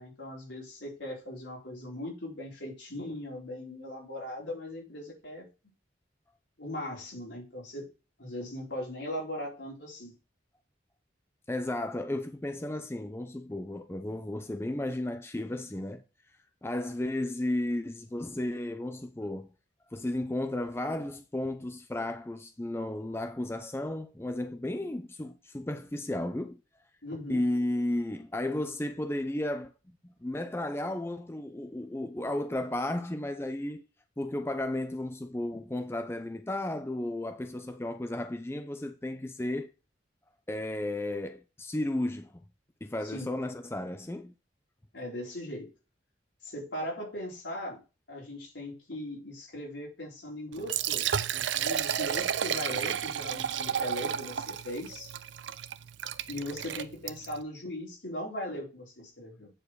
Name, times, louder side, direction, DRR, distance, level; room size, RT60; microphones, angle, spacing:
voice 1, 0.0-5.5 6.6-7.8 8.2-10.1 27.0-27.4 43.0-43.3 44.9-45.7 46.4-47.8 48.1-55.1 56.3-59.5, left 1 dB, 75° left, 4.3 m, -39 dB
voice 2, 11.5-16.0 16.6-19.5 19.9-26.6 27.3-29.7 30.0-33.9 34.2-39.7 40.5-42.4 42.8-44.3, left 1 dB, 15° left, 0.5 m, -33 dB
Liquid, 50.5-57.4, right 9 dB, 75° right, 0.5 m, -32 dB
8.8 x 4.7 x 4.7 m
head